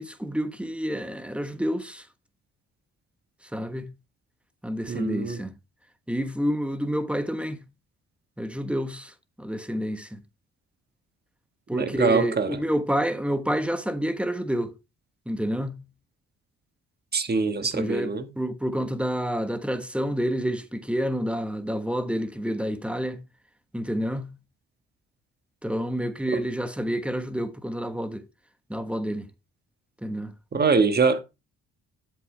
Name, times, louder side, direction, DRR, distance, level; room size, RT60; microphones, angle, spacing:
voice 1, 0.0-2.0 3.5-3.9 4.6-5.5 6.1-7.6 8.4-9.1 9.4-10.2 11.7-14.7 15.3-15.8 17.7-23.2 23.7-24.3 25.6-28.2 28.7-29.3 30.0-30.3, equal, 5° right, 1.1 m, -28 dB
voice 2, 4.9-5.4 11.7-12.6 17.1-18.3 30.5-31.2, right 4 dB, 35° right, 1.4 m, -23 dB
8.0 x 7.6 x 3.3 m
cardioid pair, 90°, 30 cm